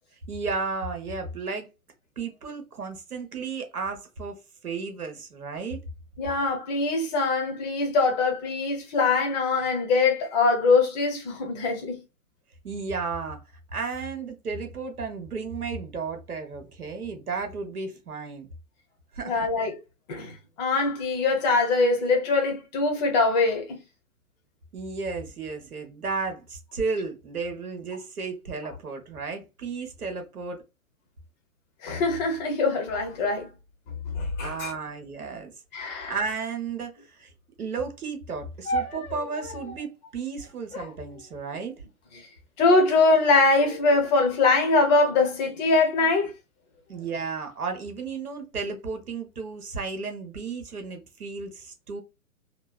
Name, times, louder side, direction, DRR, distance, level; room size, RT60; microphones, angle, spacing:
voice 1, 0.3-1.7 2.2-5.8 12.6-13.4 13.7-18.5 19.1-19.5 24.7-30.6 34.4-37.3 37.6-41.8 46.9-52.0, right 4 dB, 85° right, 0.9 m, -33 dB
voice 2, 6.2-12.0 19.2-19.7 20.1-23.8 31.8-33.5 34.0-34.7 35.7-36.2 42.6-46.3, left 3 dB, 30° left, 1.0 m, -23 dB
sound 1, 38.6-39.9 40.7-41.9 42.7-43.2 43.6-44.1 44.8-46.1 46.9-47.3, equal, 85° left, 1.1 m, -37 dB
3.1 x 2.3 x 2.2 m
figure-of-eight pair, 115°, 44 cm